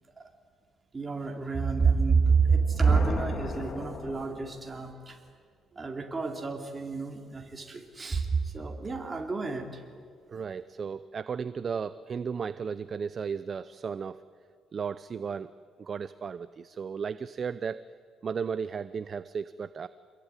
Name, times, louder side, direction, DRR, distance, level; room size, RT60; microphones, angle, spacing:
voice 1, 0.9-5.2 5.8-9.8, right 5 dB, 20° right, 2 dB, 3.7 m, -28 dB
sound 1, 2.4-5.0, left 4 dB, 45° left, 2.4 m, -38 dB
voice 2, 10.3-14.2 14.7-15.5 15.8-17.8 18.2-19.9, right 6 dB, 40° right, 14 dB, 0.6 m, -34 dB
28.0 x 21.5 x 9.9 m, 2.1 s
cardioid pair, 125°, 0 cm